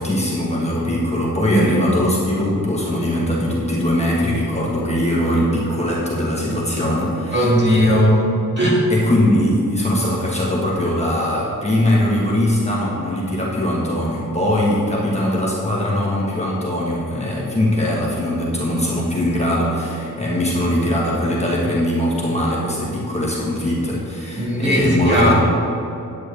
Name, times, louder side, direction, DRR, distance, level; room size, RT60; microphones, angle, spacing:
voice 1, 0.0-8.0 8.9-25.3, left 1 dB, 20° left, -5 dB, 1.4 m, -21 dB
voice 2, 7.3-8.9 24.4-25.3, equal, 30° right, -5 dB, 1.9 m, -17 dB
9.6 x 9.0 x 3.4 m, 2.9 s
wide cardioid pair, 165°, 33 cm